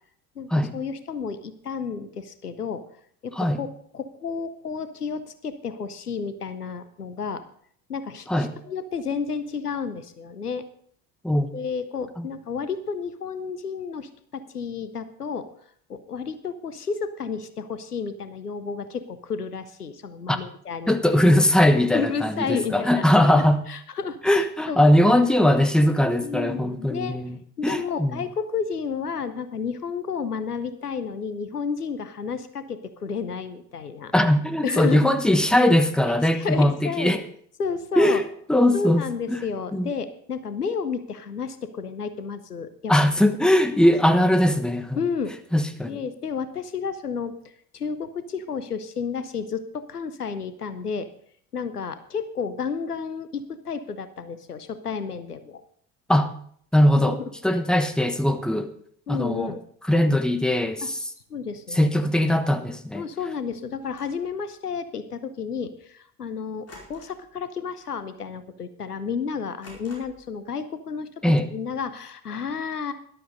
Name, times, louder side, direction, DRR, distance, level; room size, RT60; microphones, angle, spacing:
voice 1, 0.4-2.8 3.2-7.4 7.9-10.6 11.5-15.5 15.9-20.9 21.9-23.3 23.7-24.8 25.1-25.2 26.2-27.2 27.6-34.1 34.6-35.1 36.4-37.2 37.6-38.2 38.7-42.9 43.7-43.9 45.0-45.3 45.8-47.3 47.7-51.1 51.5-55.6 57.1-57.2 59.1-59.6 60.8-60.9 61.3-61.9 62.9-71.1 71.5-72.9, left 5 dB, 90° left, 12 dB, 0.8 m, -31 dB
voice 2, 20.9-23.6 24.2-27.4 27.6-28.2 34.1-37.2 38.0-38.2 38.5-39.0 39.3-39.4 39.7-39.9 42.9-45.0 45.5-46.0 56.1-56.3 56.7-57.2 57.4-58.7 59.1-59.5 59.9-61.0 61.7-63.0 71.2-71.5, left 1 dB, ahead, 9 dB, 1.1 m, -20 dB
sound 1, 63.8-64.3 66.7-67.3 67.6-67.9 68.3-68.4 69.6-70.4, left 2 dB, 30° left, 4.7 m, -48 dB
13.5 x 11.5 x 4.0 m, 0.62 s
figure-of-eight pair, 60°, 45 cm